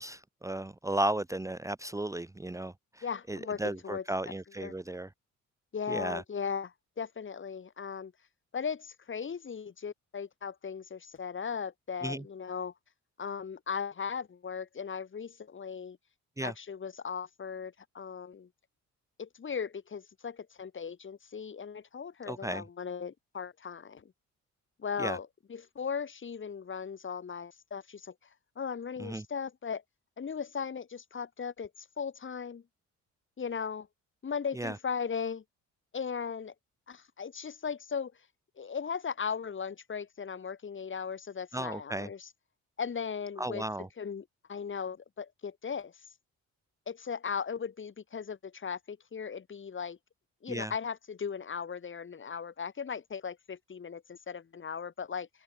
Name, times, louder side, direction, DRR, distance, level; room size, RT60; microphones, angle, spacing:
voice 1, 0.0-5.1 5.9-6.2 12.0-12.2 16.4-16.5 22.3-22.6 25.0-25.2 29.0-29.2 34.6-34.8 41.5-42.1 43.4-43.9 50.5-50.7, right 1 dB, 10° right, 1.0 m, -35 dB
voice 2, 3.0-4.0 4.6-4.7 5.7-8.1 8.5-12.7 13.2-16.0 16.4-18.5 19.2-24.1 24.8-28.1 28.5-29.8 30.2-31.7 32.0-32.6 33.4-33.9 34.2-35.4 35.9-36.5 36.9-38.1 38.6-42.3 42.8-43.6 44.0-45.9 46.9-50.0 50.4-55.3, left 6 dB, 40° left, 3.2 m, -37 dB
cardioid pair, 90°, 30 cm